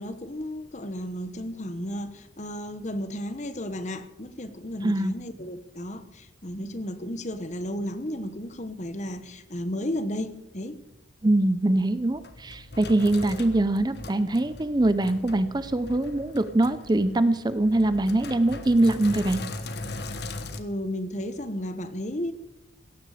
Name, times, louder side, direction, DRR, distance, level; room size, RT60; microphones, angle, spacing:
voice 1, 0.0-10.8 20.5-22.3, equal, 35° left, 12 dB, 1.1 m, -33 dB
voice 2, 4.8-5.1 11.2-19.4, right 1 dB, 20° right, 13 dB, 0.5 m, -23 dB
Sink (filling or washing), 11.8-20.6, left 2 dB, 55° left, 1.3 m, -39 dB
17.0 x 13.5 x 5.0 m, 0.86 s
head